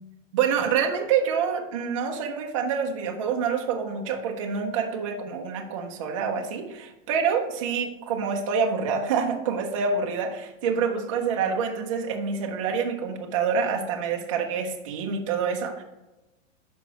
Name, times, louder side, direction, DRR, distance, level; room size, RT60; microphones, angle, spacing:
voice 1, 0.3-15.8, right 6 dB, 25° right, 2 dB, 0.5 m, -27 dB
6.5 x 5.1 x 4.7 m, 1.0 s
supercardioid pair, 175°, 39 cm